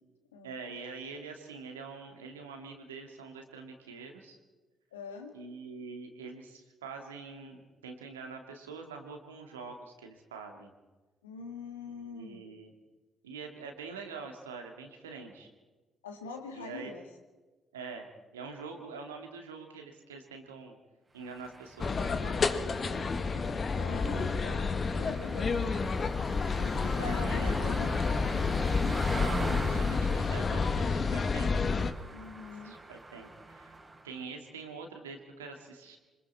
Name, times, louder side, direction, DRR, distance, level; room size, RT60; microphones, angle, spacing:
voice 1, 0.4-4.4 5.3-10.7 11.9-12.7 13.2-15.5 16.5-16.9 17.7-20.8 21.1-23.6 26.9-27.5 29.2-31.5 32.6-33.7 34.0-36.0, right 4 dB, 80° right, 4 dB, 2.1 m, -45 dB
voice 2, 4.9-5.3 11.2-12.4 16.0-17.0 23.7-25.7 26.6-27.9 32.1-32.7, left 4 dB, 80° left, 5 dB, 1.9 m, -43 dB
sound 1, 21.2-34.2, right 2 dB, 25° right, 3.5 m, -43 dB
sound 2, 21.8-31.9, left 4 dB, 40° left, 1.4 m, -30 dB
26.5 x 25.0 x 4.4 m, 1.2 s
figure-of-eight pair, 45°, 0 cm